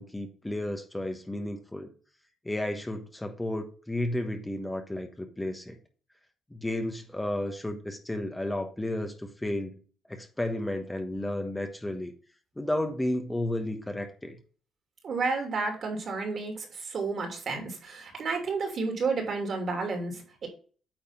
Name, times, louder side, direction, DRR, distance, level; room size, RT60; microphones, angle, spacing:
voice 1, 0.0-1.9 2.4-5.8 6.5-9.8 10.1-12.1 12.6-14.4, left 1 dB, 10° left, 5 dB, 1.2 m, -32 dB
voice 2, 15.0-20.5, right 4 dB, 55° right, 3 dB, 2.8 m, -31 dB
9.0 x 3.4 x 5.7 m, 0.39 s
cardioid pair, 90°, 0 cm